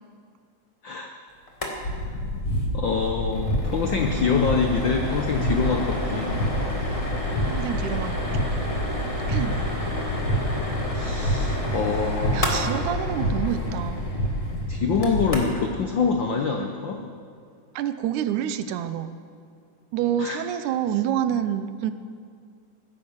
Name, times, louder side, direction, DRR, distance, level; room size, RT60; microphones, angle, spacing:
sound 1, 1.5-1.8 2.0-2.1 2.4-2.6 3.0-15.7, left 1 dB, 20° left, 1.1 m, -32 dB
sound 2, 1.8-15.3, equal, 55° left, 2.3 m, -28 dB
voice 1, 2.7-6.3 10.9-12.5 14.7-17.0 20.2-20.4, left 5 dB, 80° left, 3 dB, 1.0 m, -25 dB
voice 2, 7.5-8.5 9.3-9.6 12.3-14.1 17.8-19.1 19.9-21.9, right 10 dB, 85° right, 11 dB, 2.2 m, -27 dB
15.5 x 10.5 x 7.2 m, 2.3 s
omnidirectional pair, 3.4 m